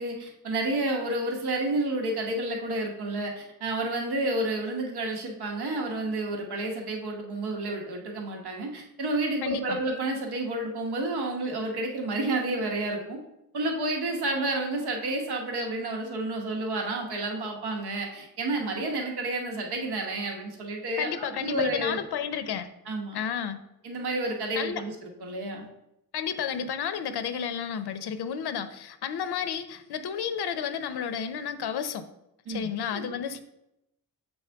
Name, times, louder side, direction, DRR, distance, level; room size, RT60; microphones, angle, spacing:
voice 1, 0.0-13.2 13.5-22.0 22.9-23.2 23.8-25.7 32.5-33.1, right 2 dB, 80° right, 1 dB, 1.1 m, -30 dB
voice 2, 9.4-9.8 21.0-22.7 23.1-23.6 24.6-24.8 26.1-32.0 32.5-33.4, left 7 dB, 80° left, 10 dB, 0.6 m, -31 dB
7.0 x 4.1 x 3.4 m, 0.85 s
wide cardioid pair, 170°, 38 cm